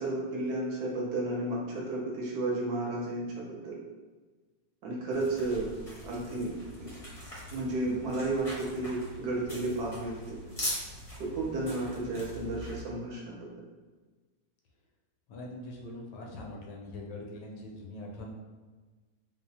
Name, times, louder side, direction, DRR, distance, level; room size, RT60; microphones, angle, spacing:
voice 1, 0.0-3.8 4.8-5.7 6.0-6.9 7.5-10.4 11.2-13.4, right 2 dB, 70° right, -3 dB, 1.1 m, -33 dB
sound 1, 5.1-12.8, equal, 40° left, 0.5 m, -42 dB
voice 2, 15.3-18.3, left 1 dB, 75° left, -1 dB, 1.2 m, -42 dB
4.3 x 2.1 x 2.7 m, 1.3 s
omnidirectional pair, 2.0 m